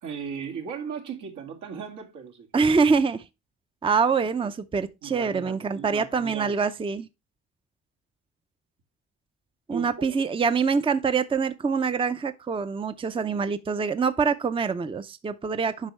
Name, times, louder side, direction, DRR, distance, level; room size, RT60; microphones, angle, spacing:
voice 1, 0.0-2.5 5.0-6.6 9.7-10.2, right 6 dB, 80° right, 2.0 m, -37 dB
voice 2, 2.5-3.2 3.8-7.1 9.7-15.9, right 5 dB, 20° right, 0.5 m, -25 dB
8.2 x 5.3 x 3.2 m
cardioid pair, 90°, 30 cm